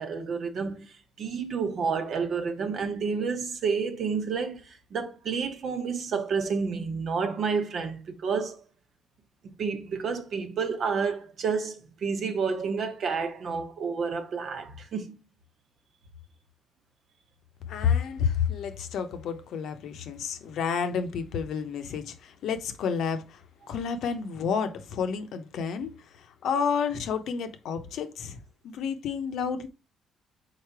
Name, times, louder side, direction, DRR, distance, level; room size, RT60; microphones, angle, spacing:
voice 1, 0.0-8.6 9.4-15.2, right 5 dB, 60° right, 1.1 m, -30 dB
voice 2, 17.7-23.4 23.7-29.7, left 6 dB, 75° left, 0.8 m, -30 dB
4.9 x 4.1 x 4.7 m
cardioid pair, 90°, 0 cm